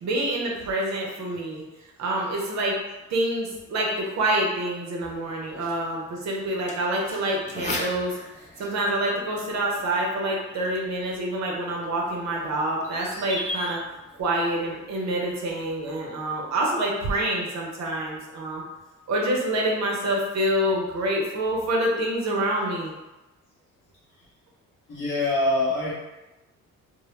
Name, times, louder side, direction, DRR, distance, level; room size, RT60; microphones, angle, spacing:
voice 1, 0.0-1.6 2.0-2.8 3.1-8.2 8.6-13.8 14.2-18.6 19.1-22.9, right 1 dB, 60° right, -2 dB, 0.6 m, -27 dB
sound 1, 5.0-16.1, left 2 dB, 25° left, 0.5 m, -40 dB
voice 2, 24.9-25.9, left 2 dB, 40° left, -9 dB, 0.8 m, -24 dB
2.1 x 2.0 x 3.1 m, 1.1 s
cardioid pair, 90°, 30 cm